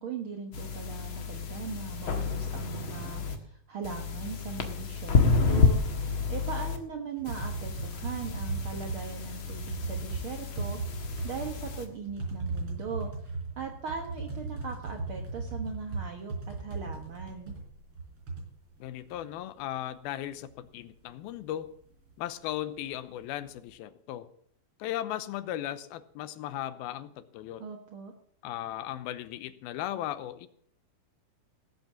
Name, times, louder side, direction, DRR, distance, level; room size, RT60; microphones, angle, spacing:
voice 1, 0.0-13.1 13.6-17.6 27.6-28.1, right 5 dB, 65° right, 3 dB, 1.3 m, -39 dB
sound 1, 0.5-3.3 3.8-6.8 7.3-11.8, left 4 dB, 50° left, 1.7 m, -30 dB
sound 2, 7.2-19.7 20.0-20.1 20.3-22.1 22.4-22.6 22.9-23.7, right 3 dB, 40° right, 4.8 m, -37 dB
voice 2, 18.8-21.7 22.2-24.3 24.8-27.7 28.4-30.5, left 12 dB, 90° left, 13 dB, 2.7 m, -37 dB
18.0 x 8.2 x 7.3 m, 0.64 s
omnidirectional pair, 4.3 m